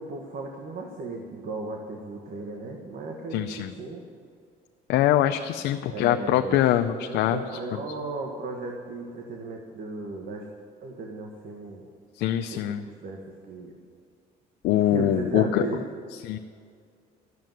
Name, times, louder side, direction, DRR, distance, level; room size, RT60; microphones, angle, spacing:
voice 1, 0.0-4.0 5.9-10.4 10.8-11.9 12.5-13.2 13.5-13.7 14.8-15.8, right 3 dB, 60° right, 1 dB, 1.7 m, -36 dB
voice 2, 3.3-3.7 4.9-7.4 12.2-12.8 14.6-15.6 16.2-16.4, left 12 dB, 85° left, 6 dB, 0.6 m, -23 dB
12.5 x 7.6 x 9.3 m, 2.2 s
cardioid pair, 110°, 17 cm